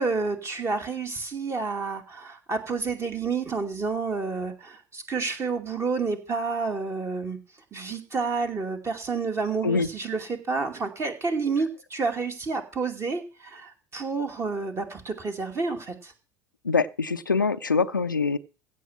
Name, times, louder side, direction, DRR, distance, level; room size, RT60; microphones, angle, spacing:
voice 1, 0.0-7.4 7.7-16.1, right 4 dB, 25° right, 2.5 m, -29 dB
voice 2, 16.6-18.4, left 4 dB, 85° left, 0.6 m, -24 dB
16.0 x 6.5 x 6.1 m
figure-of-eight pair, 75°, 10 cm